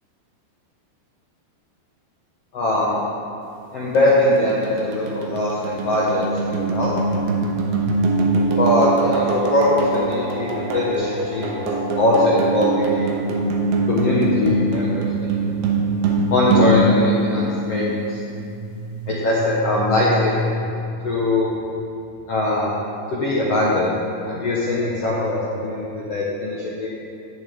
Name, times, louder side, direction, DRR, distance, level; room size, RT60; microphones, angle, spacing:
voice 1, 2.5-3.0 3.7-6.9 8.6-11.6 12.0-13.1 13.9-15.3 16.3-18.2 19.1-20.3 21.0-21.5 22.3-22.8 23.1-24.0 24.2-26.9, left 1 dB, 80° left, -6 dB, 1.3 m, -21 dB
sound 1, 4.0-18.1, right 2 dB, 75° right, 2.7 m, -23 dB
sound 2, 17.7-22.4, left 1 dB, 50° right, 1.8 m, -32 dB
16.0 x 7.0 x 3.6 m, 2.7 s
omnidirectional pair, 4.7 m